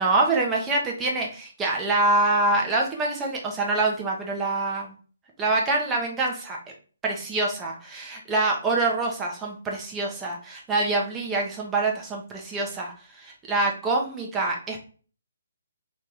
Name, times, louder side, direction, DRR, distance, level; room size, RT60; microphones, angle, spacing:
voice 1, 0.0-4.9 5.4-6.6 7.0-14.8, right 2 dB, 15° right, -1 dB, 0.9 m, -25 dB
3.0 x 2.9 x 3.5 m, 0.39 s
figure-of-eight pair, 140°, 0 cm